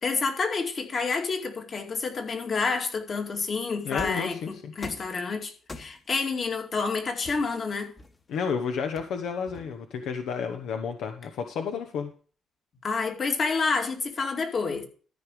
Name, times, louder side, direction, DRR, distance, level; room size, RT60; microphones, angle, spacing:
voice 1, 0.0-7.9 12.8-14.9, left 4 dB, 45° left, 2.3 m, -29 dB
voice 2, 3.8-4.7 8.3-12.1, left 6 dB, 80° left, 1.1 m, -31 dB
sound 1, 4.0-4.3 4.8-5.2 5.7-6.2 7.2-8.4 9.0-10.0, left 2 dB, 30° left, 1.4 m, -43 dB
13.5 x 5.4 x 4.8 m
cardioid pair, 90°, 0 cm